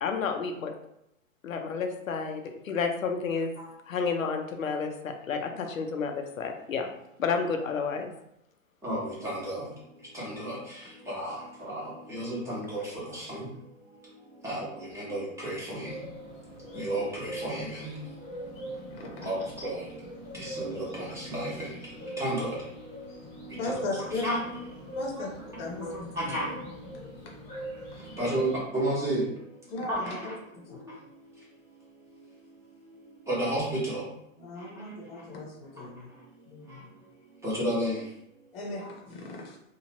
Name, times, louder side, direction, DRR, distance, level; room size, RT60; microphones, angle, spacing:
voice 1, 0.0-0.7 1.4-3.5 3.9-6.9 7.2-8.1, left 5 dB, 75° left, 4 dB, 0.6 m, -30 dB
voice 2, 8.8-25.3 25.5-26.8 27.0-30.3 30.7-34.1 34.5-35.4 35.9-38.9, right 1 dB, 5° right, -7 dB, 1.0 m, -35 dB
sound 1, 15.8-28.6, right 1 dB, 15° left, 0.8 m, -42 dB
voice 3, 18.7-19.3 23.6-24.3 24.9-25.3 25.6-26.4 29.7-30.8 34.4-36.1 36.5-36.9 38.5-39.7, left 3 dB, 45° left, 0 dB, 0.9 m, -37 dB
2.9 x 2.4 x 2.9 m, 0.79 s
figure-of-eight pair, 105°, 41 cm